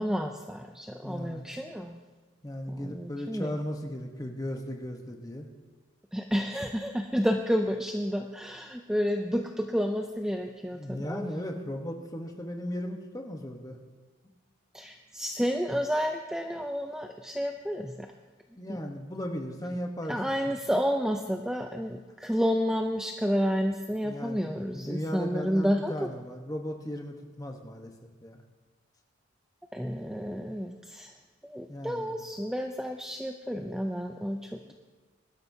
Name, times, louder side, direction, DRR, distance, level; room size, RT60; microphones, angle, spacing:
voice 1, 0.0-2.0 2.7-3.6 6.1-11.3 14.7-18.1 18.7-18.8 20.1-26.1 29.7-31.1 31.4-34.7, equal, 5° right, 4 dB, 0.4 m, -30 dB
voice 2, 1.0-1.5 2.4-5.5 10.7-13.8 18.6-20.5 24.0-28.4 31.7-32.1 34.5-34.7, equal, 15° left, 3 dB, 1.0 m, -37 dB
21.5 x 12.0 x 2.7 m, 1.3 s
head